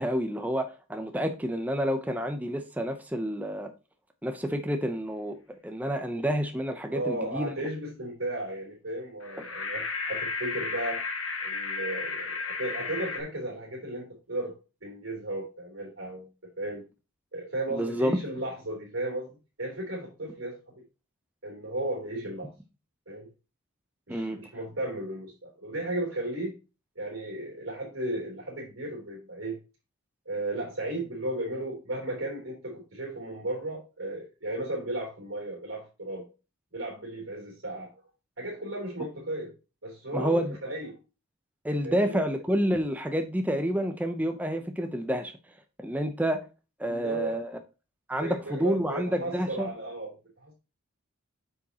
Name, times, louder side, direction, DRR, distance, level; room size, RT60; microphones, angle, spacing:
voice 1, 0.0-3.7 4.2-7.5 17.7-18.2 24.1-24.4 40.1-40.6 41.6-45.3 45.8-46.4 46.8-47.6 48.1-49.7, equal, 5° right, 0.7 m, -29 dB
voice 2, 6.9-11.0 11.4-16.3 16.6-16.8 17.3-20.8 21.4-22.5 23.1-23.3 24.1-26.5 26.9-29.6 30.2-36.3 36.7-37.9 38.4-39.5 39.8-40.9 41.8-42.2 46.8-47.4 48.2-50.1 50.4-50.5, right 1 dB, 65° right, 3.3 m, -35 dB
sound 1, 9.2-13.2, left 4 dB, 70° left, 1.5 m, -33 dB
8.1 x 6.2 x 2.9 m
head